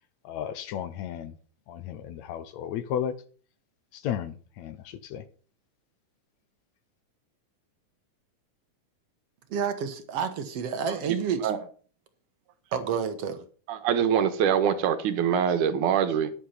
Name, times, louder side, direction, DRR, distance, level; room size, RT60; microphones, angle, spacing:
voice 1, 0.2-1.3 1.7-3.2 3.9-5.2, left 9 dB, 70° left, 2.0 m, -34 dB
voice 2, 9.5-11.5 12.7-13.4, right 7 dB, 60° right, 2.0 m, -29 dB
voice 3, 10.9-11.6 13.7-16.3, right 8 dB, 85° right, 2.6 m, -25 dB
10.5 x 8.3 x 5.7 m
omnidirectional pair, 3.5 m